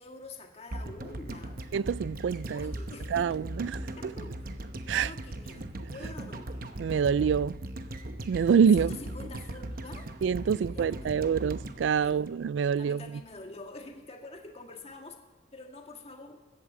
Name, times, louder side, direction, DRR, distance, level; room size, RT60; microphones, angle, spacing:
voice 1, 0.0-1.7 2.5-3.2 4.0-4.6 4.8-6.5 8.7-10.1 10.5-11.5 12.0-12.3 12.8-15.2 15.5-16.4, left 2 dB, 35° left, 1.6 m, -46 dB
sound 1, 0.7-12.9 13.2-13.3, right 1 dB, 50° right, 0.9 m, -39 dB
voice 2, 1.7-2.7 3.1-3.8 4.9-5.1 6.8-7.6 8.3-8.9 10.2-13.0, right 7 dB, 75° right, 0.3 m, -26 dB
14.0 x 8.5 x 8.6 m
head